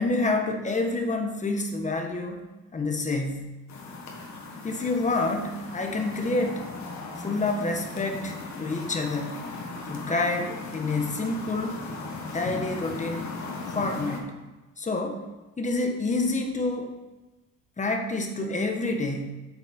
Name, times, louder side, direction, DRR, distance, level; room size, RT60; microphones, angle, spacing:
voice 1, 0.0-2.4 2.7-3.6 4.6-6.7 7.2-9.4 9.8-11.8 12.2-13.3 13.7-14.3 14.8-15.2 15.6-17.0 17.8-19.3, left 2 dB, 25° left, 4 dB, 1.3 m, -28 dB
sound 1, 3.7-14.2, left 3 dB, 60° left, 1.6 m, -37 dB
8.2 x 7.3 x 4.3 m, 1.2 s
cardioid pair, 115°, 32 cm